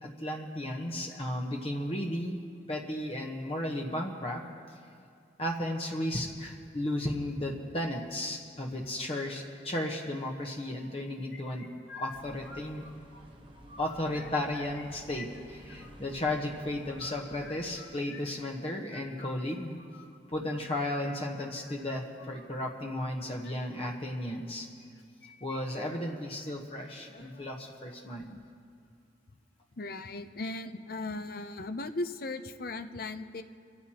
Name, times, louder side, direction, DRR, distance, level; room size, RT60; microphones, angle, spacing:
voice 1, 0.0-2.4 2.7-4.4 5.4-12.9 13.8-19.8 20.3-24.7 25.4-28.4, left 1 dB, 30° left, 1 dB, 1.1 m, -34 dB
sound 1, 11.3-13.2 13.5-14.8 15.1-16.1 16.8-22.5 23.2-23.5 24.8-25.6 25.9-26.0 26.4-26.5 27.1-27.5, left 5 dB, 75° left, 1.5 m, -50 dB
sound 2, 12.1-17.8, equal, 25° right, 1.1 m, -52 dB
voice 2, 29.8-33.4, left 2 dB, 50° left, 9 dB, 0.6 m, -37 dB
25.5 x 14.5 x 2.9 m, 2.2 s
head